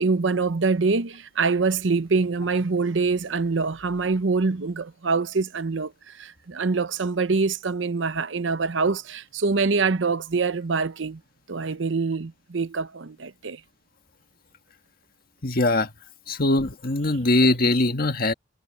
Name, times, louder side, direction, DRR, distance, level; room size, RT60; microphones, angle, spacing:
voice 1, 0.0-11.2 11.5-13.6, right 4 dB, 80° right, 0.8 m, -25 dB
voice 2, 15.4-15.9 16.3-18.3, left 2 dB, 50° left, 1.7 m, -21 dB
head